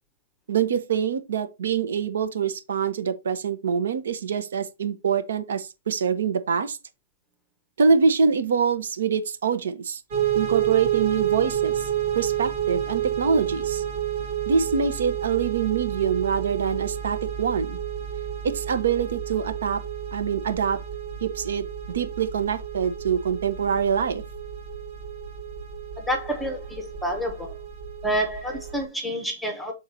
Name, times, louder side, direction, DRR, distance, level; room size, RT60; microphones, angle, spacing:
voice 1, 0.5-6.8 7.8-10.0 10.3-11.9 12.1-13.8 14.5-17.8 18.4-19.8 20.1-20.8 21.2-24.2, right 6 dB, 65° right, 1.0 m, -25 dB
sound 1, 10.1-28.8, right 10 dB, 30° right, 1.3 m, -30 dB
voice 2, 26.0-27.5 28.0-29.7, equal, ahead, 0.8 m, -28 dB
6.5 x 4.0 x 4.1 m
hypercardioid pair, 175°, 0 cm